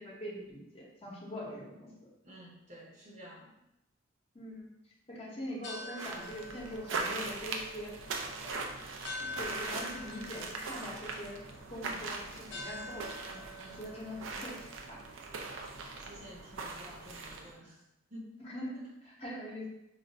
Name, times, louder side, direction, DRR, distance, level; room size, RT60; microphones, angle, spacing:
voice 1, 0.0-1.9 4.3-4.7 5.1-7.9 8.4-8.7 9.2-11.4 11.7-13.4 13.7-15.0 18.4-19.7, equal, 30° left, -5 dB, 0.8 m, -43 dB
voice 2, 2.2-3.5 11.9-12.1 13.6-13.8 15.8-17.8 18.1-18.3 18.7-18.9, equal, 40° right, -4 dB, 0.8 m, -51 dB
sound 1, 5.5-15.9, left 2 dB, 65° left, 0.6 m, -48 dB
sound 2, 6.0-17.5, right 3 dB, 75° right, 0.4 m, -41 dB
2.4 x 2.4 x 4.1 m, 0.87 s
head